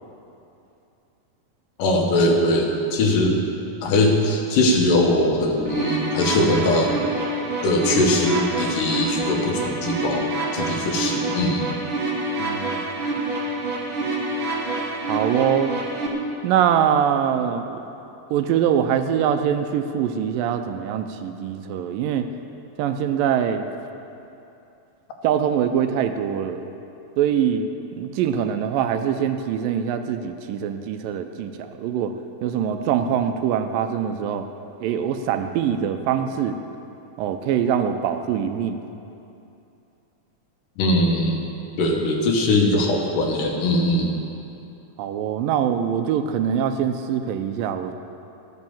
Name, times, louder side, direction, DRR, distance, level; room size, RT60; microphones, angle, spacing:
voice 1, 1.8-3.4 3.8-7.0 7.6-10.3 10.5-11.7 40.8-41.4 41.8-44.2, left 1 dB, 75° left, 1 dB, 2.9 m, -21 dB
sound 1, 5.7-16.1, right 2 dB, 50° right, 2.0 m, -27 dB
voice 2, 12.4-12.8 15.1-15.7 16.4-17.8 18.3-22.3 22.8-23.6 25.2-26.7 27.2-27.7 27.9-32.1 32.4-34.5 34.8-36.6 37.2-38.8 45.0-47.9, right 9 dB, 85° right, 7 dB, 2.3 m, -23 dB
13.5 x 8.5 x 7.2 m, 2.8 s
omnidirectional pair, 4.0 m